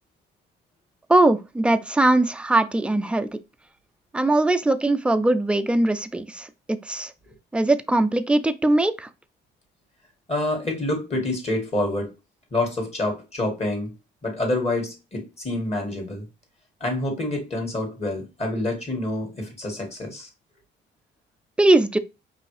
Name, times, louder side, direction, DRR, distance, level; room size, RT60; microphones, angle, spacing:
voice 1, 1.1-3.3 4.1-7.1 7.5-9.1 21.6-22.0, right 2 dB, 5° right, 0.4 m, -20 dB
voice 2, 10.3-12.1 12.5-13.9 14.2-16.3 16.8-20.3, left 2 dB, 30° left, 2.1 m, -27 dB
5.1 x 2.8 x 3.2 m
cardioid pair, 90°, 20 cm